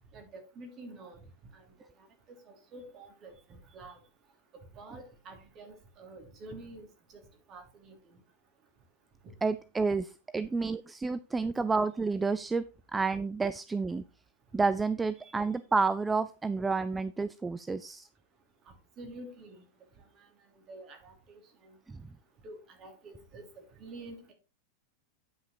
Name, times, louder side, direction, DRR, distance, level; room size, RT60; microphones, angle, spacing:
voice 1, 0.1-1.2 1.5-1.6 2.3-4.0 4.5-6.9 7.5-8.2 9.2-9.3 11.5-11.6 15.2-15.3 19.0-19.6 20.2-20.3 20.7-21.8 22.4-24.3, right 2 dB, 35° right, 4 dB, 2.8 m, -48 dB
voice 2, 9.4-12.6 12.9-14.0 14.5-18.1 21.9-22.0, right 4 dB, 10° right, 14 dB, 0.4 m, -30 dB
9.7 x 5.9 x 4.2 m, 0.31 s
figure-of-eight pair, 90°, 0 cm